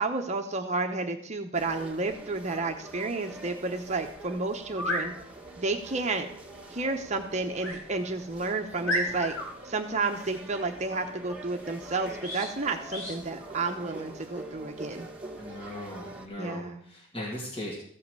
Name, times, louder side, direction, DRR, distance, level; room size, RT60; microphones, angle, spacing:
voice 1, 0.0-5.1 5.6-6.3 6.7-9.3 9.6-15.1 16.4-16.8, right 3 dB, 35° right, 4 dB, 0.9 m, -31 dB
sound 1, 1.5-16.3, right 1 dB, 5° right, 2.1 m, -45 dB
sound 2, 3.7-3.8 4.6-5.1 7.6-7.8 8.3-8.4 8.8-9.5 12.2-12.5 12.9-13.2, left 1 dB, 75° left, 4.5 m, -31 dB
voice 2, 15.4-17.7, left 1 dB, 25° left, -4 dB, 2.5 m, -38 dB
14.5 x 5.7 x 8.1 m, 0.62 s
head